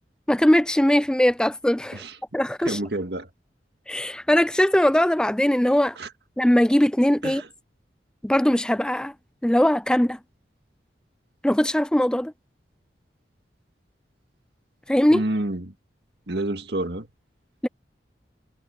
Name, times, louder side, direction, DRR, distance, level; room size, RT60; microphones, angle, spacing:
voice 1, 0.3-2.0 2.3-2.8 3.9-6.0 6.4-7.4 8.2-9.1 9.4-10.2 11.4-12.3 14.9-15.2 17.6-17.7, left 1 dB, 5° left, 0.4 m, -20 dB
voice 2, 2.7-3.3 6.0-6.1 7.2-7.5 15.1-15.7 16.3-17.1, right 1 dB, 70° right, 1.9 m, -28 dB
head